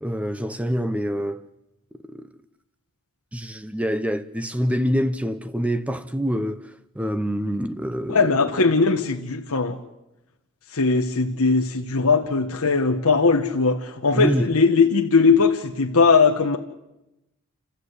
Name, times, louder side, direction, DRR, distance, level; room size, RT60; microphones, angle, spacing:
voice 1, 0.0-1.5 2.1-2.3 3.3-8.8 14.1-14.5, equal, 5° right, 0.8 m, -26 dB
voice 2, 8.1-9.8 10.7-16.6, left 4 dB, 85° left, 1.4 m, -19 dB
29.5 x 14.5 x 8.2 m
head